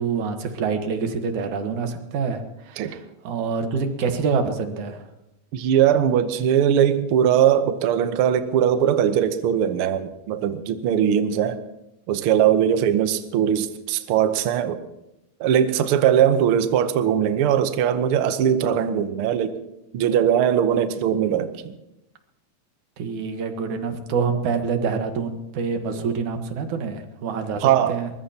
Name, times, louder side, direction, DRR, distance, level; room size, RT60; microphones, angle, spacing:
voice 1, 0.0-5.0 23.0-28.1, right 5 dB, 85° right, 7 dB, 2.8 m, -26 dB
voice 2, 5.5-11.6 12.1-14.8 15.4-19.6 19.9-21.7 27.6-28.0, right 9 dB, 65° right, 9 dB, 1.5 m, -20 dB
23.0 x 20.5 x 2.9 m, 0.89 s
omnidirectional pair, 3.3 m